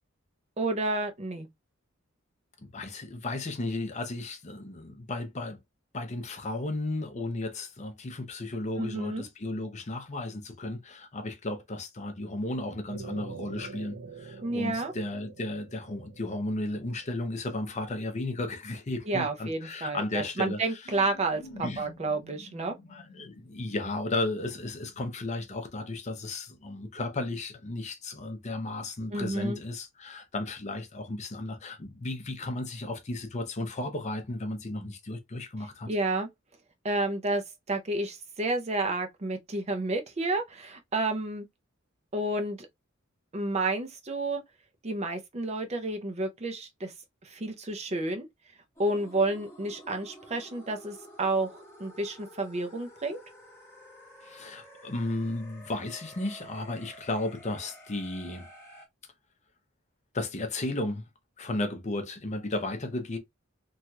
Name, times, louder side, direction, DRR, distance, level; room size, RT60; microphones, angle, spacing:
voice 1, 0.6-1.5 8.8-9.2 14.4-14.9 19.1-22.7 29.1-29.6 35.9-36.3 36.8-37.4 37.7-41.5 42.1-42.7 43.3-44.4 44.8-46.9 47.2-48.3 48.8-53.2, right 2 dB, 30° right, 0.6 m, -30 dB
voice 2, 2.7-5.6 5.9-20.9 21.6-21.8 22.9-35.9 54.2-58.5 60.1-61.1 61.4-63.2, left 2 dB, 35° left, 0.6 m, -34 dB
sound 1, 12.9-18.0, right 4 dB, 80° right, 0.5 m, -45 dB
sound 2, 20.9-25.4, left 1 dB, 70° left, 0.7 m, -49 dB
sound 3, 48.8-58.9, equal, 15° left, 1.0 m, -51 dB
3.0 x 2.8 x 2.3 m
head